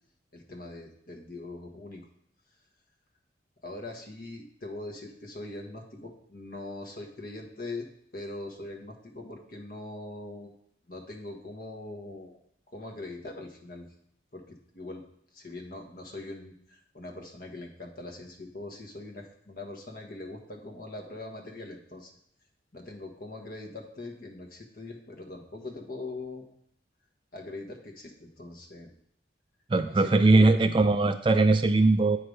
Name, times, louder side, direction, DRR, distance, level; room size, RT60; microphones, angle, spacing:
voice 1, 0.3-2.1 3.6-10.5 10.9-12.4 12.7-13.9 14.3-15.0 15.3-22.1 22.7-26.5 27.3-28.9 29.9-30.6, left 2 dB, 50° left, 2 dB, 1.3 m, -42 dB
voice 2, 29.7-32.2, right 2 dB, 25° right, 9 dB, 0.3 m, -20 dB
8.7 x 4.9 x 5.3 m, 0.68 s
head